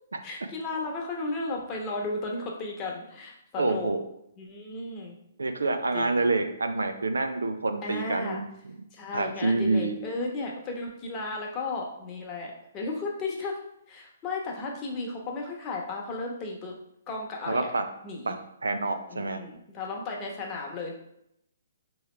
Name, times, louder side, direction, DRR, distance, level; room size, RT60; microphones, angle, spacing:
voice 1, 0.2-3.9 4.4-5.1 5.9-6.3 7.8-8.4 8.9-13.6 13.9-16.8 17.1-17.7 18.0-18.4 19.1-20.9, left 3 dB, 25° left, 0 dB, 1.0 m, -34 dB
voice 2, 3.6-4.0 5.4-8.5 9.1-9.9 17.5-17.8 18.3-18.4 18.6-19.4, right 3 dB, 75° right, 7 dB, 0.4 m, -27 dB
4.5 x 3.1 x 3.2 m, 0.77 s
figure-of-eight pair, 130°, 0 cm